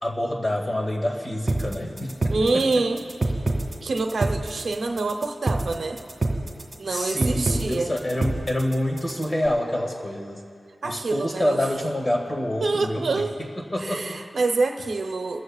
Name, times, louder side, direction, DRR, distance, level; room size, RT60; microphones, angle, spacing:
voice 1, 0.0-2.9 6.8-10.4 10.8-14.2, left 1 dB, 25° left, 0 dB, 1.9 m, -27 dB
sound 1, 1.5-9.5, right 2 dB, 35° right, 1.7 m, -27 dB
voice 2, 2.3-3.0 3.8-6.0 6.8-7.9 10.8-11.6 12.6-13.3 13.8-15.4, right 3 dB, 65° right, 4 dB, 0.8 m, -26 dB
27.0 x 14.5 x 2.4 m, 2.2 s
wide cardioid pair, 115°, 0 cm